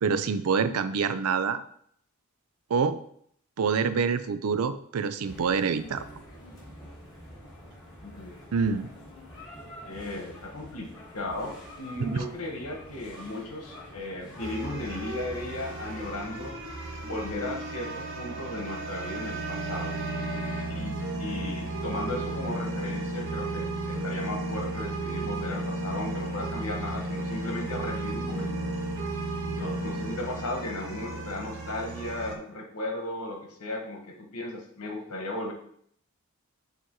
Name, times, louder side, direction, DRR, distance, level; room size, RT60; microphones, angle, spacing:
voice 1, 0.0-1.6 2.7-3.0 3.6-6.0 8.5-8.9 12.0-12.2, right 5 dB, 85° right, 12 dB, 0.5 m, -26 dB
sound 1, 5.2-16.1, equal, 20° left, 2.6 m, -46 dB
voice 2, 8.0-8.4 9.8-16.6 17.0-19.9 20.7-28.6 29.5-35.5, left 2 dB, 90° left, 2 dB, 1.3 m, -36 dB
sound 2, 14.4-32.4, right 2 dB, 60° right, 1.4 m, -34 dB
Wind instrument woodwind instrument, 17.4-22.6, right 5 dB, 35° right, 1.2 m, -44 dB
6.9 x 2.9 x 4.6 m, 0.65 s
head